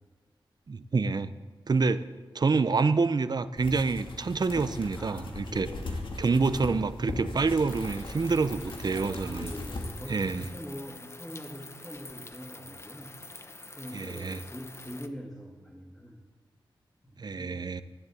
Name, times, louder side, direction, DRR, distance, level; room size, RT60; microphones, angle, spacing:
voice 1, 0.7-1.3 1.7-2.0 2.3-5.7 6.2-9.5 10.1-10.5 13.9-14.4 17.2-17.8, right 4 dB, 50° right, 13 dB, 0.7 m, -27 dB
sound 1, 3.6-10.5, left 2 dB, 70° left, 2.4 m, -38 dB
voice 2, 4.9-5.9 8.8-13.2 13.8-16.2 17.0-17.8, equal, 5° left, 0 dB, 2.0 m, -43 dB
sound 2, 7.7-15.1, left 2 dB, 30° left, 0.9 m, -46 dB
13.5 x 11.0 x 8.5 m, 1.4 s
wide cardioid pair, 85°, 9 cm